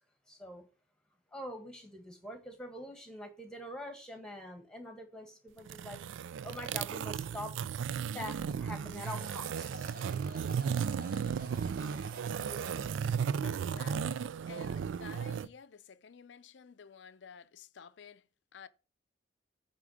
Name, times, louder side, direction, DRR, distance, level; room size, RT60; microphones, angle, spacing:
voice 1, 0.3-0.6 1.3-6.0 6.4-7.6 8.1-9.9, left 1 dB, 5° left, 1.7 m, -44 dB
sound 1, 5.6-15.5, right 7 dB, 80° right, 0.3 m, -35 dB
sound 2, 9.0-14.2, right 1 dB, 50° right, 1.4 m, -50 dB
voice 2, 13.2-18.7, left 6 dB, 70° left, 0.5 m, -52 dB
8.5 x 3.7 x 6.3 m
head